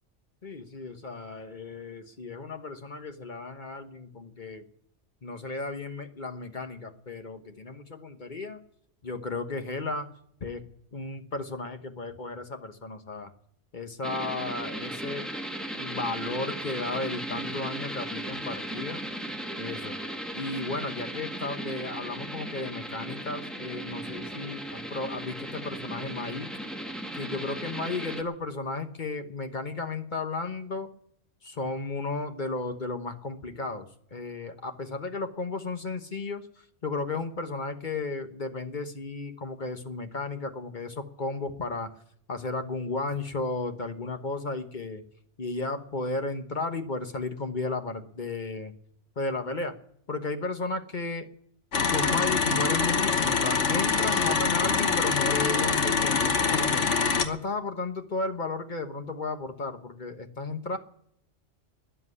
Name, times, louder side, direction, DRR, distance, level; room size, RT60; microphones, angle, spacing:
voice 1, 0.4-4.6 5.2-8.6 9.0-10.1 10.4-10.6 10.9-13.3 13.7-15.3 15.8-19.0 19.6-20.0 20.3-26.5 27.1-30.9 31.4-41.9 42.3-45.0 45.4-48.7 49.2-49.8 50.1-51.3 51.9-56.9 57.2-60.8, left 3 dB, 40° left, 7 dB, 1.2 m, -34 dB
sound 1, 14.0-28.2, right 1 dB, ahead, 1.2 m, -36 dB
sound 2, 51.7-57.3, left 5 dB, 70° left, 1.5 m, -25 dB
13.0 x 10.0 x 9.8 m, 0.70 s
omnidirectional pair, 1.2 m